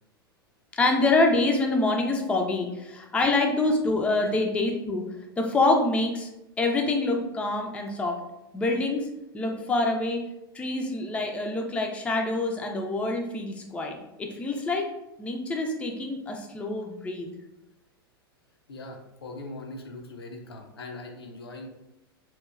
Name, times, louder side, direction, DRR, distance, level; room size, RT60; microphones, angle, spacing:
voice 1, 0.7-5.0 5.4-6.3 6.6-8.2 8.5-9.1 9.3-10.2 10.5-14.9 15.2-17.3, left 2 dB, 10° left, 2 dB, 0.4 m, -26 dB
voice 2, 18.7-21.7, left 2 dB, 80° left, 2 dB, 0.5 m, -41 dB
2.9 x 2.1 x 2.3 m, 0.91 s
figure-of-eight pair, 95°, 13 cm